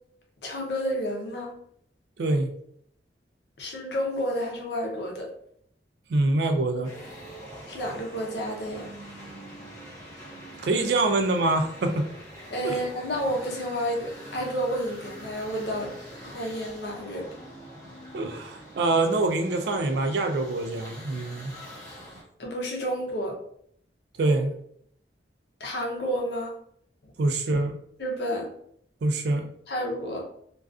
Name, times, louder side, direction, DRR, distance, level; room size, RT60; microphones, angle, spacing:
voice 1, 0.4-1.6 3.6-5.3 7.7-8.9 12.5-15.9 16.2-17.3 22.4-23.4 25.6-26.5 27.0-27.1 28.0-28.5 29.7-30.3, equal, 70° left, 0 dB, 0.6 m, -30 dB
voice 2, 2.2-2.5 6.1-6.9 10.6-12.0 12.6-12.8 18.1-21.5 24.2-24.5 27.2-27.7 29.0-29.5, right 2 dB, 70° right, 6 dB, 0.3 m, -25 dB
sound 1, 6.8-22.2, equal, 20° left, 1.0 m, -44 dB
2.3 x 2.3 x 2.4 m, 0.67 s
head